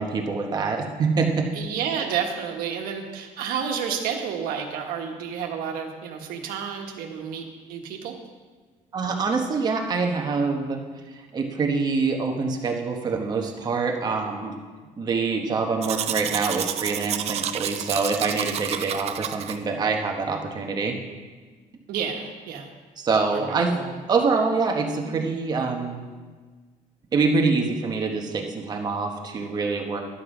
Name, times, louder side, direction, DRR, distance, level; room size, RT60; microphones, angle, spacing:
voice 1, 0.0-1.5 8.9-10.8 11.3-14.5 15.0-20.9 23.0-23.7 24.1-26.1 27.1-30.0, right 4 dB, 30° right, 2 dB, 1.1 m, -25 dB
voice 2, 1.5-8.1 21.9-22.7 23.3-23.9, right 7 dB, 90° right, 2 dB, 1.4 m, -30 dB
Domestic sounds home sounds, 15.8-19.6, right 10 dB, 45° right, 0.5 m, -30 dB
11.5 x 7.7 x 5.0 m, 1.4 s
cardioid pair, 170°, 15 cm